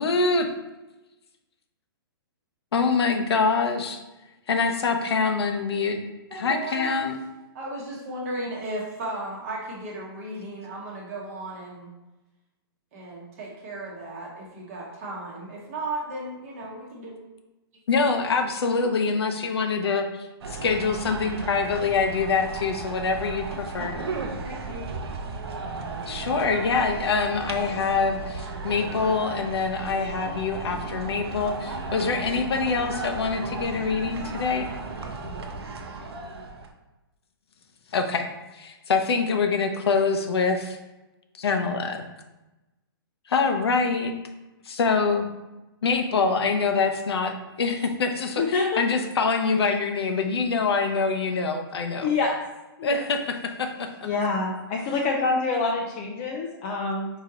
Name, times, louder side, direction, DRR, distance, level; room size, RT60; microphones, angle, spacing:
voice 1, 0.0-0.5 2.7-4.0 4.5-6.0 6.3-7.2 17.9-20.1 20.5-24.0 26.1-34.7 37.9-38.3 38.5-40.8 41.3-42.0 43.3-44.1 44.6-45.3 45.8-52.1 52.8-53.9, left 4 dB, 85° left, 5 dB, 0.7 m, -25 dB
voice 2, 6.3-7.0 7.5-11.9 12.9-17.1 23.8-24.1 24.4-24.9, right 1 dB, 35° right, -3 dB, 0.9 m, -35 dB
sound 1, 20.4-36.7, right 3 dB, 85° right, 0.7 m, -35 dB
voice 3, 48.4-48.8 52.0-52.3 52.8-53.0 54.0-57.1, left 4 dB, 25° left, -1 dB, 0.3 m, -26 dB
5.0 x 2.8 x 3.7 m, 1.0 s
hypercardioid pair, 165°, 13 cm